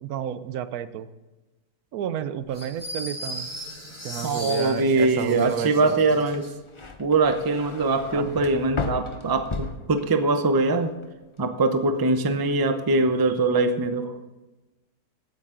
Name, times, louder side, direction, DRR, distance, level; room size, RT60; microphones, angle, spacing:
voice 1, 0.0-1.1 1.9-3.5 4.0-6.2 8.1-8.4, right 9 dB, 80° right, 13 dB, 1.1 m, -31 dB
sound 1, 2.5-6.5, equal, 10° left, 3.6 m, -37 dB
voice 2, 4.2-6.5 7.0-10.9 11.4-14.2, right 3 dB, 25° right, 8 dB, 0.5 m, -22 dB
sound 2, 6.3-10.5 10.8-11.4, left 4 dB, 30° left, 0.6 m, -35 dB
16.5 x 8.9 x 3.8 m, 1.1 s
omnidirectional pair, 1.6 m